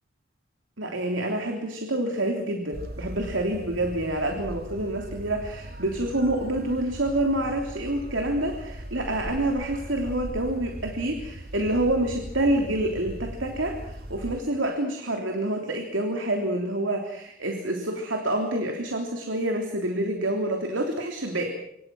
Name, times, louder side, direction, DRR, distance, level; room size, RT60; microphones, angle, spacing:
voice 1, 0.8-21.5, right 1 dB, 75° right, 3 dB, 3.3 m, -27 dB
sound 1, 2.7-14.4, equal, 50° right, 2.5 m, -39 dB
26.5 x 25.5 x 6.2 m, 0.76 s
head